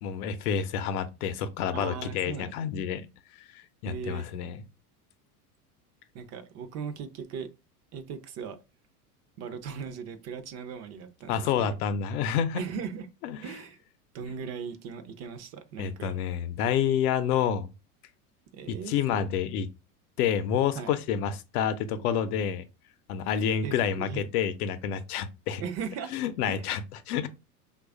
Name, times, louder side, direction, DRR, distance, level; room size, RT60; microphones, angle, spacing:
voice 1, 0.0-3.1 3.4-4.6 11.3-12.6 13.2-13.4 15.8-17.7 18.7-19.7 20.2-22.7 23.1-25.6 26.1-27.3, left 8 dB, 70° left, 0.6 m, -29 dB
voice 2, 1.7-2.5 3.8-4.3 6.1-7.5 7.9-8.6 9.4-11.5 12.5-13.1 13.4-13.8 14.1-16.1 18.5-19.2 20.7-20.9 23.6-24.3 25.6-26.1 26.5-26.6, right 6 dB, 35° right, 0.5 m, -38 dB
3.0 x 2.4 x 3.5 m
hypercardioid pair, 100°, 46 cm